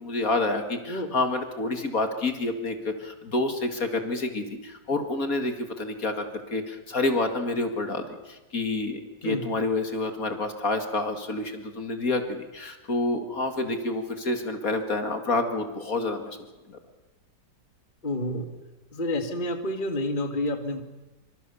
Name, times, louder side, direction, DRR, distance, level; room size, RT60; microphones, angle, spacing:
voice 1, 0.0-16.4 16.7-16.8, left 2 dB, 50° left, 7 dB, 2.5 m, -28 dB
voice 2, 18.0-18.5 18.9-20.8, left 1 dB, 25° left, 6 dB, 2.0 m, -29 dB
25.5 x 25.0 x 7.0 m, 1.1 s
omnidirectional pair, 2.0 m